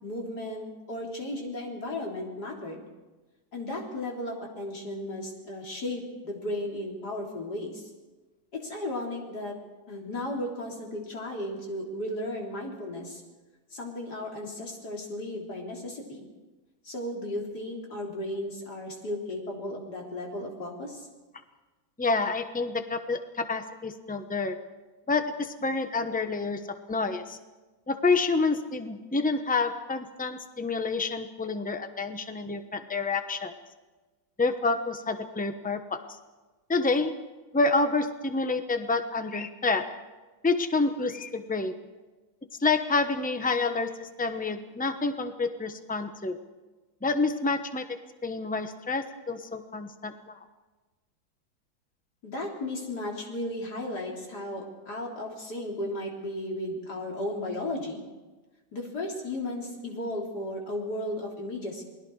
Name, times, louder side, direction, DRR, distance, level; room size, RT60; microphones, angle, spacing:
voice 1, 0.0-2.9 3.5-7.9 8.5-9.6 9.9-13.2 13.7-16.3 16.8-21.1 52.2-58.0 58.7-61.8, left 1 dB, 50° left, -1 dB, 4.1 m, -35 dB
voice 2, 22.0-24.6 25.1-27.4 27.9-33.5 34.4-36.0 36.7-37.2 37.5-40.0 40.4-41.8 42.6-46.4 47.0-50.4, left 3 dB, 10° left, 8 dB, 0.4 m, -28 dB
28.5 x 20.5 x 4.8 m, 1.2 s
omnidirectional pair, 2.2 m